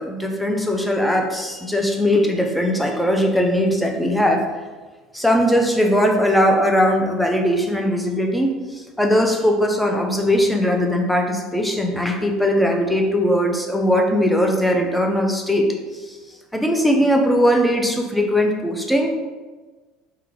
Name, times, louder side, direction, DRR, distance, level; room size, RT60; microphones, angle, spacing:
voice 1, 0.0-4.4 5.1-15.7 15.9-16.2 16.5-19.1, equal, 5° left, 2 dB, 0.5 m, -19 dB
3.5 x 2.3 x 3.1 m, 1.3 s
figure-of-eight pair, 65°, 0 cm